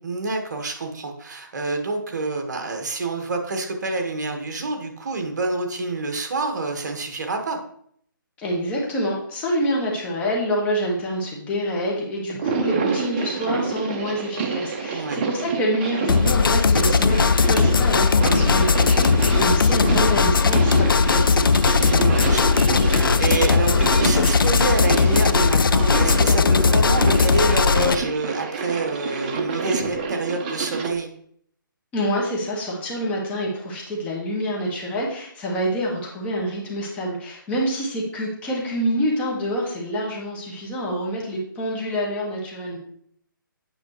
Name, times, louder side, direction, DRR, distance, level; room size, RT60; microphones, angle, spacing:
voice 1, 0.0-7.6 14.9-15.2 21.7-31.1, right 3 dB, 55° right, 4 dB, 1.4 m, -27 dB
voice 2, 8.4-21.5 31.9-42.8, equal, 10° left, -3 dB, 1.5 m, -27 dB
sound 1, 12.3-30.9, right 4 dB, 25° right, 0.8 m, -28 dB
sound 2, 16.1-28.0, left 5 dB, 80° left, 0.4 m, -18 dB
8.9 x 5.7 x 3.1 m, 0.64 s
hypercardioid pair, 155°, 11 cm